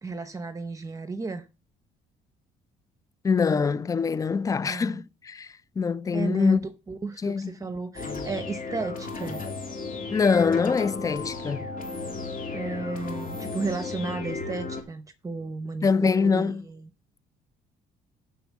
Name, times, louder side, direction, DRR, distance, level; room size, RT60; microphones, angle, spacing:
voice 1, 0.0-1.4 4.7-5.0 6.1-9.4 12.5-16.9, right 3 dB, 20° right, 0.8 m, -34 dB
voice 2, 3.2-6.6 7.2-7.5 10.1-11.7 15.8-16.6, left 5 dB, 20° left, 0.4 m, -24 dB
sound 1, 7.9-14.8, left 4 dB, 55° left, 2.7 m, -34 dB
7.1 x 6.2 x 7.3 m
cardioid pair, 110°, 17 cm